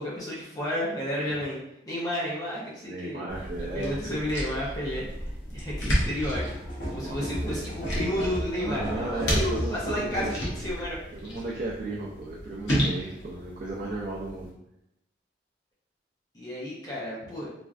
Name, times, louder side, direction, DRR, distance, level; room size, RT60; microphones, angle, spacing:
voice 1, 0.0-1.6 1.9-3.2 3.6-6.4 6.9-11.0 16.3-17.5, left 1 dB, 20° left, -6 dB, 0.5 m, -32 dB
voice 2, 2.8-4.4 6.9-7.7 8.5-10.4 11.1-14.5, right 2 dB, 50° right, -4 dB, 0.4 m, -35 dB
sound 1, 3.3-14.5, equal, 85° left, 0.9 m, -33 dB
sound 2, 6.3-10.5, equal, 65° left, 1.2 m, -35 dB
3.2 x 2.3 x 2.4 m, 0.81 s
head